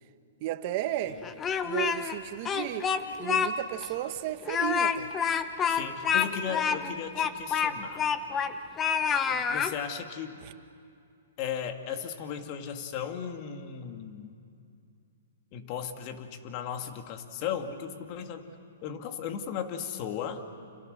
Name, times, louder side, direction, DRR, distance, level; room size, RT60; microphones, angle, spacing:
voice 1, 0.4-1.2 1.6-2.9 3.2-5.1 5.8-6.0 9.3-9.4 10.4-10.5, right 12 dB, 40° right, 10 dB, 1.3 m, -34 dB
Speech, 1.2-2.2 2.5-3.5 3.8-3.9 4.4-8.5 8.8-9.7, left 7 dB, 20° left, 1.0 m, -27 dB
voice 2, 5.7-8.1 9.5-10.4 11.4-14.3 15.5-18.5 18.8-20.4, left 8 dB, 40° left, 6 dB, 2.2 m, -36 dB
30.0 x 28.5 x 6.7 m, 2.5 s
hypercardioid pair, 145°, 0 cm